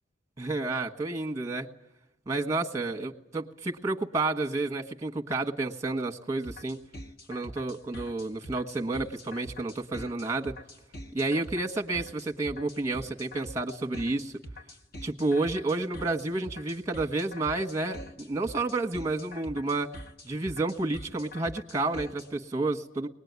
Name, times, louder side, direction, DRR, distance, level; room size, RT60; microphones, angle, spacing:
voice 1, 0.4-1.7 2.3-6.8 7.3-10.6 11.1-14.3 15.0-19.9 20.2-23.1, right 2 dB, 15° right, 3 dB, 1.2 m, -30 dB
sound 1, 6.4-22.3, equal, 50° left, 1.5 m, -44 dB
22.0 x 20.0 x 9.4 m, 0.92 s
head